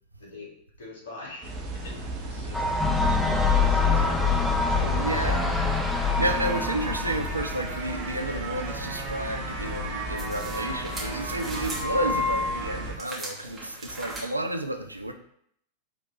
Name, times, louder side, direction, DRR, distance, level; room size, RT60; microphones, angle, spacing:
voice 1, 0.2-0.5 0.8-3.1 3.5-5.2, left 2 dB, 60° left, 1.7 m, -43 dB
sound 1, 1.4-12.9, equal, 40° right, 1.5 m, -33 dB
sound 2, 2.5-7.5, left 4 dB, 5° left, 0.6 m, -25 dB
voice 2, 4.9-5.7 6.2-15.1, right 1 dB, 85° right, 0.4 m, -31 dB
sound 3, 10.2-11.9 13.0-14.2, right 2 dB, 15° right, 1.6 m, -39 dB
5.2 x 3.2 x 2.9 m
figure-of-eight pair, 90°, 0 cm